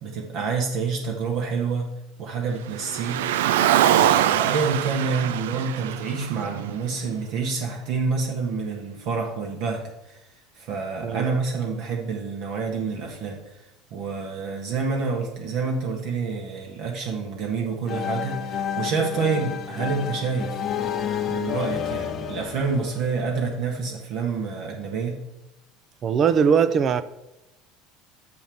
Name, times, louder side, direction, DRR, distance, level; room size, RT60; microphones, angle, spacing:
voice 1, 0.0-1.9 2.2-3.2 3.9-10.2 10.5-20.6 21.3-25.2, right 4 dB, 60° right, 1.5 m, -28 dB
Car, 2.7-7.1, right 11 dB, 85° right, 0.4 m, -23 dB
sound 1, 17.9-23.6, left 9 dB, 40° left, 0.9 m, -30 dB
voice 2, 26.0-27.0, right 7 dB, 40° right, 0.6 m, -20 dB
6.3 x 5.6 x 7.0 m
supercardioid pair, 100°, 0 cm